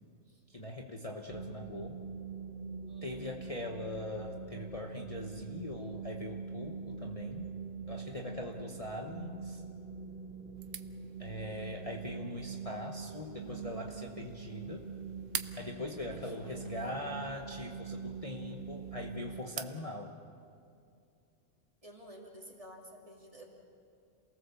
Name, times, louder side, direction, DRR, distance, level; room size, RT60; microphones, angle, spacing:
voice 1, 0.5-2.0 3.0-7.5 7.9-9.6 11.2-14.8 15.5-20.1, left 1 dB, 30° left, 1 dB, 1.1 m, -41 dB
sound 1, 1.3-19.4, right 5 dB, 45° right, 1.5 m, -44 dB
voice 2, 2.9-3.4 16.1-17.0 21.8-23.5, equal, 25° right, -2 dB, 3.2 m, -53 dB
sound 2, 10.6-19.8, right 8 dB, 90° right, 1.2 m, -48 dB
28.0 x 18.5 x 7.1 m, 2.4 s
omnidirectional pair, 1.3 m